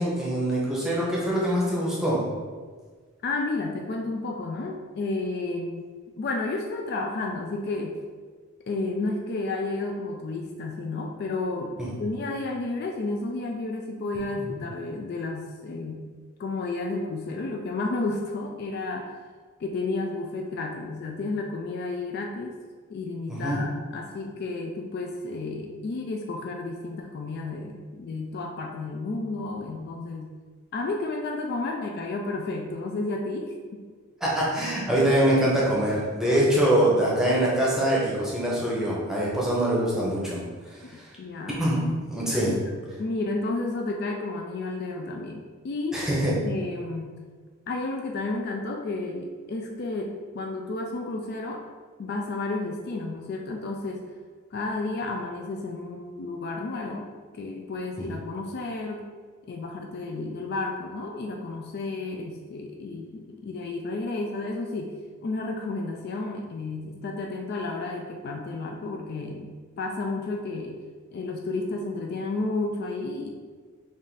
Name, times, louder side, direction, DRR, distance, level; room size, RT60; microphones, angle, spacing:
voice 1, 0.0-2.2 11.8-11.9 14.4-14.5 23.3-23.6 34.2-40.4 40.7-41.0 41.6-41.8 42.1-42.6 45.9-46.3 58.0-58.1, right 1 dB, ahead, -6 dB, 0.8 m, -24 dB
voice 2, 3.2-5.8 6.2-8.0 8.7-16.1 16.4-19.2 19.6-22.6 22.9-30.3 30.7-33.8 40.3-40.4 40.8-41.6 42.3-46.1 46.4-47.2 47.7-51.6 52.0-54.0 54.5-57.1 57.3-59.1 59.5-64.9 65.2-69.5 69.8-70.8 71.1-73.3, left 2 dB, 50° left, 2 dB, 0.3 m, -32 dB
3.5 x 2.5 x 3.9 m, 1.5 s
head